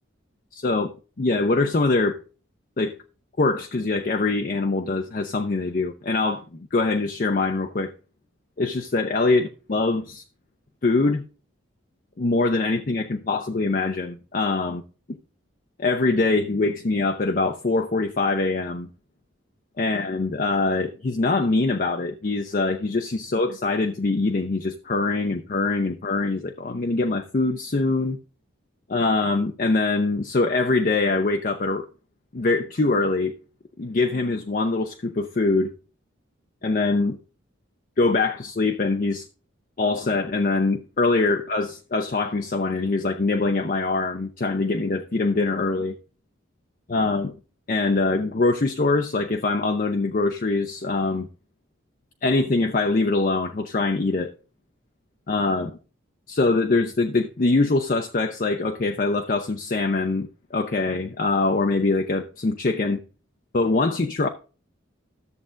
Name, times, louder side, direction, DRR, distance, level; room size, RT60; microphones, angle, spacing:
voice 1, 0.5-2.2 2.8-3.0 3.4-7.9 8.6-10.2 10.8-11.2 12.2-14.8 15.1-15.2 15.8-18.9 19.8-28.2 28.9-31.9 32.3-33.3 33.8-35.7 36.6-37.2 38.0-39.3 39.8-45.9 46.9-47.4 47.7-51.3 52.2-54.3 55.3-55.8 56.3-63.0 63.5-64.3, left 3 dB, 40° left, 0.5 m, -23 dB
13.0 x 7.3 x 2.5 m
head